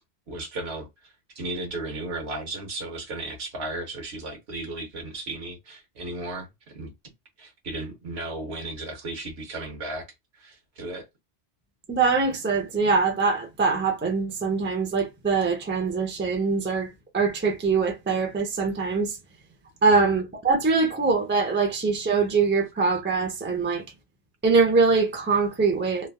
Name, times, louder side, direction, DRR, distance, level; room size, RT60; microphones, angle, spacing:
voice 1, 0.3-6.9 7.4-10.1 10.3-11.1 20.0-20.1, right 2 dB, 65° right, 1.1 m, -35 dB
voice 2, 11.9-19.2 19.8-23.8 24.4-26.1, right 4 dB, 15° right, 0.5 m, -23 dB
3.3 x 2.3 x 2.3 m
omnidirectional pair, 1.2 m